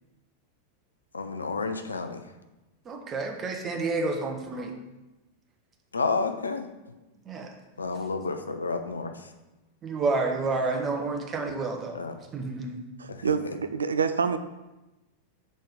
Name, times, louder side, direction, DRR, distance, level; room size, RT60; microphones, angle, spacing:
voice 1, 1.1-2.2 5.9-6.7 7.8-9.3 11.9-12.2 13.1-13.5, left 4 dB, 75° left, 6 dB, 0.6 m, -31 dB
voice 2, 2.8-4.7 7.2-7.5 9.8-12.0 12.3-12.8, right 3 dB, 25° right, 3 dB, 1.2 m, -29 dB
voice 3, 13.0-14.4, right 6 dB, 70° right, 11 dB, 0.3 m, -27 dB
5.5 x 4.5 x 6.3 m, 1.0 s
figure-of-eight pair, 90°, 0 cm